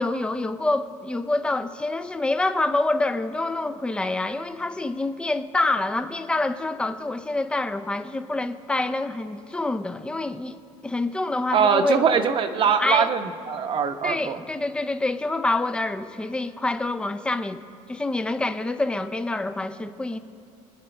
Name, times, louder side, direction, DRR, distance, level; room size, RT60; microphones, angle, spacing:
voice 1, 0.0-10.6 10.8-12.0 12.8-13.1 14.0-17.6 17.9-20.2, left 2 dB, 5° left, 10 dB, 0.5 m, -26 dB
voice 2, 11.5-14.4, right 6 dB, 40° right, 8 dB, 0.9 m, -22 dB
28.0 x 10.0 x 3.3 m, 2.5 s
cardioid pair, 145°, 14 cm